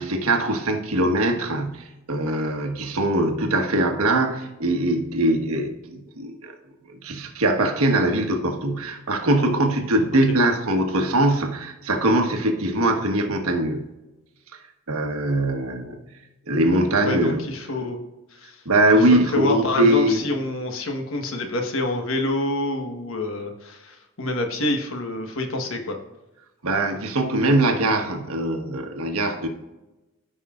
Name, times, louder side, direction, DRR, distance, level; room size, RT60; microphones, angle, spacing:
voice 1, 0.0-6.5 6.9-13.9 14.9-16.0 16.5-17.4 17.7-17.9 18.6-20.2 26.6-29.5, right 1 dB, 85° right, 5 dB, 1.2 m, -22 dB
voice 2, 17.0-18.0 18.4-18.6 18.9-25.9, left 2 dB, 70° left, 4 dB, 1.2 m, -27 dB
13.5 x 5.5 x 2.4 m, 1.0 s
head